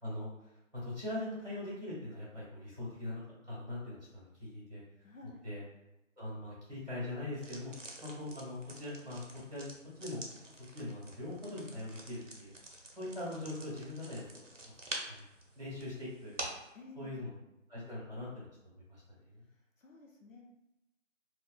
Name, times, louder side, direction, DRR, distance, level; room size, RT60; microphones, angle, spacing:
voice 1, 0.0-4.8 5.4-5.6 6.2-7.7 8.0-9.7 10.0-12.5 12.9-14.8 15.1-15.2 15.5-16.3 16.9-17.3 17.7-19.4, left 1 dB, 30° right, -10 dB, 1.4 m, -42 dB
voice 2, 5.0-5.4 16.7-17.2 19.5-20.4, left 3 dB, 80° left, 0 dB, 0.8 m, -53 dB
sound 1, 7.3-16.7, right 2 dB, 65° right, 0.7 m, -47 dB
3.5 x 2.4 x 2.2 m, 0.90 s
figure-of-eight pair, 175°, 39 cm